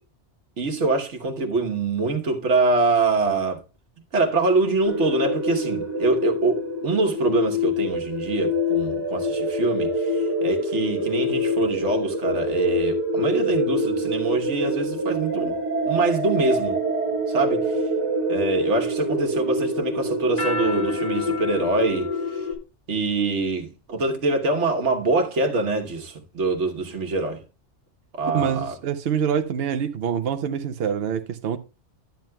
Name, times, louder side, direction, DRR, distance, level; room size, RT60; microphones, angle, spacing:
voice 1, 0.6-3.6 4.1-15.6 15.8-16.8 17.3-17.8 18.3-22.4 22.9-27.4 28.1-28.8, right 3 dB, 85° right, 1.5 m, -24 dB
sound 1, 4.8-22.5, equal, 45° left, 2.6 m, -26 dB
voice 2, 28.3-31.6, right 8 dB, 65° right, 0.9 m, -25 dB
12.0 x 9.1 x 2.2 m
omnidirectional pair, 1.2 m